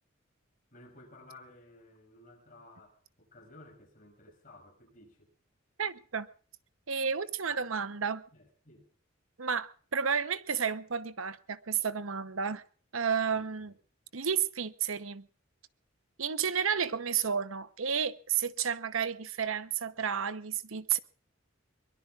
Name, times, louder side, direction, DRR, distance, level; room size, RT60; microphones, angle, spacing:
voice 1, 0.7-5.3 7.4-7.6 8.3-8.9 13.3-13.8, left 2 dB, 40° left, 6.4 m, -55 dB
voice 2, 5.8-6.3 6.9-8.2 9.4-12.6 12.9-13.7 14.1-15.3 16.2-21.0, right 7 dB, 80° right, 1.0 m, -31 dB
23.0 x 21.5 x 2.5 m
head